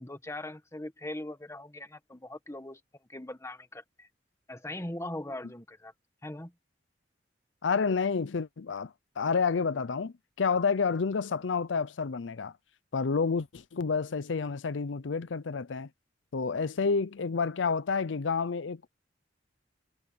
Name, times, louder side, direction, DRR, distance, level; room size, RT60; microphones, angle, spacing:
voice 1, 0.0-4.1 4.5-5.9 6.2-6.5, left 1 dB, 15° left, 1.7 m, -40 dB
voice 2, 7.6-12.5 12.9-15.9 16.3-18.9, left 5 dB, 85° left, 0.6 m, -29 dB
head